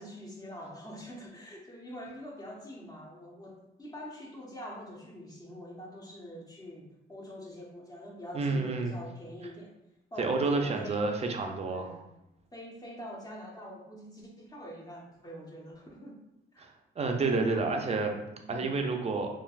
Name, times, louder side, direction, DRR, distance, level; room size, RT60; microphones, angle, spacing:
voice 1, 0.0-9.7 10.1-11.1 11.6-12.1 12.5-16.2 16.5-16.7 18.4-18.8, equal, 20° left, -2 dB, 0.8 m, -45 dB
voice 2, 8.3-8.9 10.2-11.9 16.6-16.7 17.0-18.2 18.5-19.3, right 3 dB, 30° right, 3 dB, 0.5 m, -29 dB
3.2 x 2.4 x 2.4 m, 0.89 s
cardioid pair, 90°, 20 cm